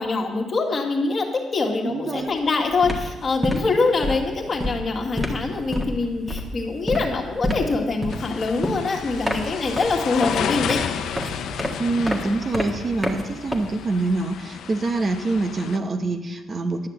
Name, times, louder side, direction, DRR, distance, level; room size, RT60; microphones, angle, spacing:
voice 1, 0.0-10.8, left 3 dB, 40° left, 2 dB, 1.9 m, -24 dB
voice 2, 1.8-2.3 11.8-16.9, right 3 dB, 40° right, 6 dB, 0.9 m, -25 dB
sound 1, 2.2-2.4 2.7-14.1, equal, 10° right, 1.5 m, -29 dB
sound 2, 8.1-15.8, left 8 dB, 75° left, 0.6 m, -32 dB
11.0 x 6.5 x 7.8 m, 1.2 s
cardioid pair, 90°, 0 cm